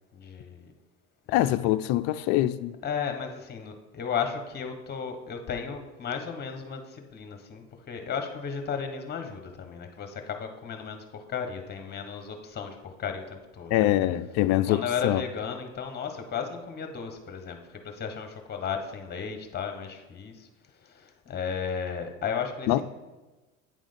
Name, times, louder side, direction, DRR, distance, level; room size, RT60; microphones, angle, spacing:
voice 1, 0.1-0.7 1.3-1.6 2.8-13.9 14.7-17.6 17.8-20.5 20.8-22.8, left 6 dB, 25° left, 1.2 m, -34 dB
voice 2, 1.3-2.8 13.7-15.2 22.7-22.8, left 14 dB, 40° left, 0.4 m, -24 dB
9.2 x 3.7 x 5.2 m
hypercardioid pair, 90°, 40 cm